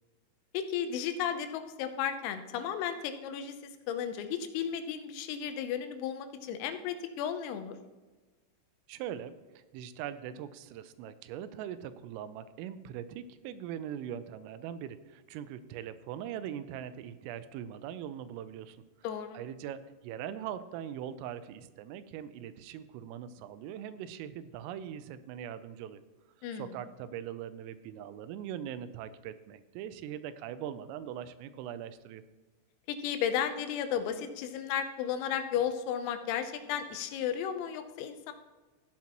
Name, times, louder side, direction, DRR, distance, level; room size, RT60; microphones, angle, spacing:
voice 1, 0.5-3.6 3.9-7.8 19.0-19.4 26.4-26.7 32.9-38.3, left 8 dB, 90° left, 8 dB, 3.5 m, -34 dB
voice 2, 8.9-9.3 9.7-18.8 19.3-26.0 26.5-32.2, right 10 dB, 85° right, 12 dB, 3.2 m, -41 dB
14.5 x 9.5 x 3.0 m, 1.3 s
omnidirectional pair, 5.9 m